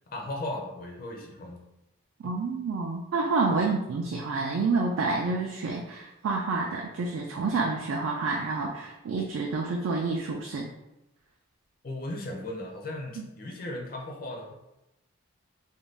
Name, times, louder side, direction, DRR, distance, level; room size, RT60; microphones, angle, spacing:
voice 1, 0.1-1.6 3.5-3.7 11.8-14.5, left 1 dB, 40° left, 0 dB, 0.4 m, -37 dB
voice 2, 2.2-10.7 13.2-13.3, right 3 dB, 65° right, 0 dB, 0.3 m, -28 dB
2.5 x 2.2 x 3.2 m, 0.91 s
head